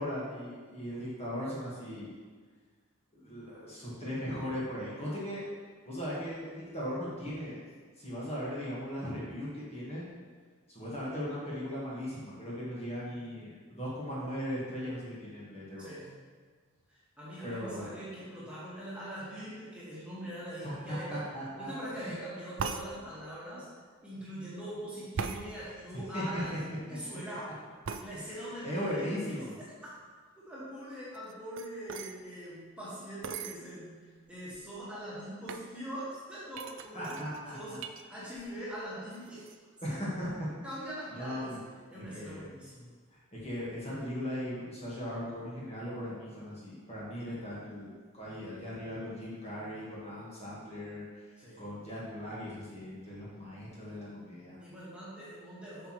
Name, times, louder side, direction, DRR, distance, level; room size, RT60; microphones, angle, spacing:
voice 1, 0.0-2.1 3.1-5.4 5.9-7.6 8.0-10.0 10.7-15.9 17.4-18.0 20.6-21.7 25.6-26.4 26.9-27.0 28.1-28.3 28.6-29.6 36.9-37.8 39.8-40.5 41.2-41.6 41.9-42.4 43.3-51.1 51.6-54.6, equal, 30° left, -7 dB, 1.6 m, -38 dB
voice 2, 15.8-16.2 16.9-21.2 21.6-23.7 24.0-27.6 28.0-29.5 30.4-37.2 37.5-37.8 38.1-39.5 39.9-40.0 40.6-41.5 41.9-42.9 51.4-51.6 54.6-55.9, right 1 dB, 5° right, -9 dB, 1.7 m, -42 dB
sound 1, 22.6-22.9 25.2-25.4 27.8-28.1 31.1-32.2 33.2-33.6 34.3-34.4 34.5-34.9 35.5-35.7 36.5-38.0 38.4-38.8 39.1-39.6, right 5 dB, 60° right, 0.4 m, -39 dB
8.3 x 5.9 x 3.1 m, 1.5 s
head